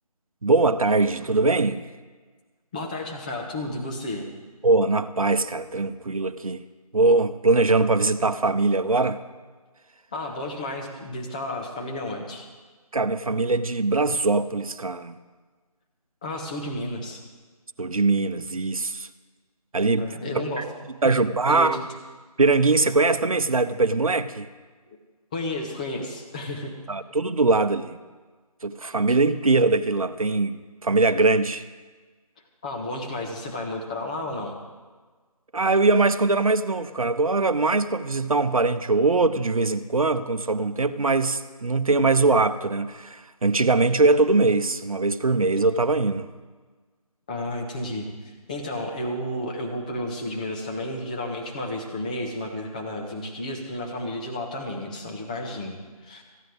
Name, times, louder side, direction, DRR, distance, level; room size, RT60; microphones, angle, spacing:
voice 1, 0.4-1.8 4.6-6.6 6.9-9.2 12.9-15.2 17.8-19.1 19.7-20.1 20.6-20.7 21.0-21.8 22.4-24.5 26.9-28.0 28.6-31.6 35.5-46.3, right 3 dB, 65° right, 10 dB, 0.9 m, -22 dB
voice 2, 2.7-4.3 10.1-12.5 16.2-17.2 20.0-20.6 21.0-21.2 21.5-21.9 25.3-26.7 32.6-34.5 47.3-48.1 48.5-56.2, left 1 dB, 15° left, 0 dB, 1.0 m, -32 dB
18.0 x 14.5 x 3.5 m, 1.4 s
figure-of-eight pair, 160°, 20 cm